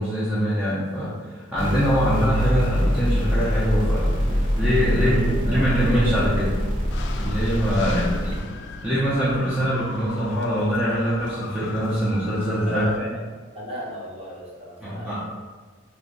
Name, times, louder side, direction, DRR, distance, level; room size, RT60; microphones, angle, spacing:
voice 1, 0.0-6.5 7.2-8.3 8.8-13.1 14.8-15.3, equal, 5° right, -9 dB, 0.6 m, -23 dB
sound 1, 1.6-8.4, equal, 75° right, 1.4 m, -24 dB
voice 2, 4.8-5.8 7.8-8.2 12.6-12.9 13.5-15.4, equal, 30° right, -5 dB, 0.9 m, -36 dB
sound 2, 6.9-13.0, left 4 dB, 60° left, 0.3 m, -37 dB
3.4 x 2.5 x 3.9 m, 1.5 s
head